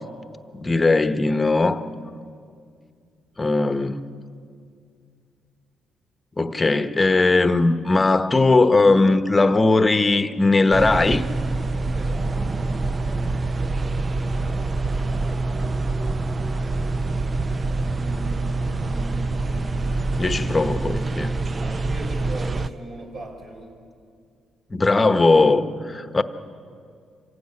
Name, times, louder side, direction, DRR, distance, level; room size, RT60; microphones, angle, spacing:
voice 1, 0.5-1.9 3.4-4.0 6.4-11.2 20.2-21.3 24.7-26.2, left 3 dB, 20° left, 1.1 m, -19 dB
sound 1, 10.7-22.7, right 2 dB, 35° right, 0.6 m, -25 dB
voice 2, 11.9-12.6 17.6-20.0 21.6-23.7, right 1 dB, 50° right, 5.4 m, -39 dB
25.5 x 15.5 x 9.6 m
cardioid pair, 90°, 0 cm